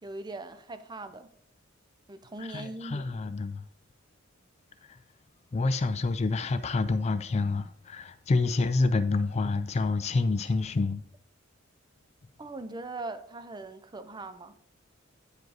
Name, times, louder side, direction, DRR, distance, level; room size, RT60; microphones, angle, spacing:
voice 1, 0.0-1.3 2.1-3.2 12.4-14.6, right 2 dB, 20° right, 0.5 m, -40 dB
voice 2, 2.5-3.6 5.5-11.0, left 3 dB, 30° left, 0.4 m, -28 dB
9.0 x 5.1 x 3.9 m
head